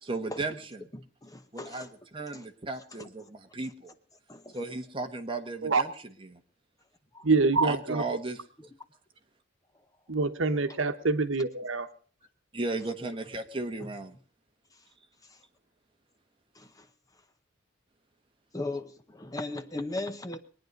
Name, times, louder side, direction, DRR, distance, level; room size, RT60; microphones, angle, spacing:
voice 1, 0.0-0.9 1.5-3.9 4.5-6.4 7.6-8.4 12.5-14.1, right 2 dB, 25° right, 1.2 m, -35 dB
voice 2, 0.9-1.9 2.3-2.4 3.0-3.1 4.3-4.6 7.1-7.2 16.6-16.9 18.5-20.4, left 2 dB, 15° left, 0.8 m, -37 dB
voice 3, 7.2-8.0 10.1-11.9, right 3 dB, 70° right, 1.1 m, -25 dB
22.0 x 9.5 x 5.2 m
head